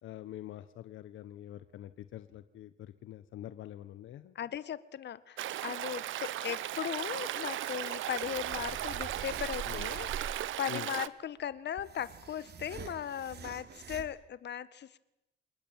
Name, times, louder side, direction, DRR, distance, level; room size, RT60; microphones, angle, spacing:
voice 1, 0.0-4.3 9.6-9.9 10.7-10.9, left 13 dB, 80° left, 12 dB, 1.3 m, -45 dB
voice 2, 4.3-10.3 10.6-15.0, left 9 dB, 60° left, 15 dB, 1.7 m, -38 dB
Stream, 5.4-11.1, right 13 dB, 80° right, 1.2 m, -36 dB
sound 1, 8.2-10.6 11.4-14.1, right 6 dB, 55° right, 3.4 m, -45 dB
28.0 x 20.0 x 9.1 m, 0.87 s
cardioid pair, 90°, 20 cm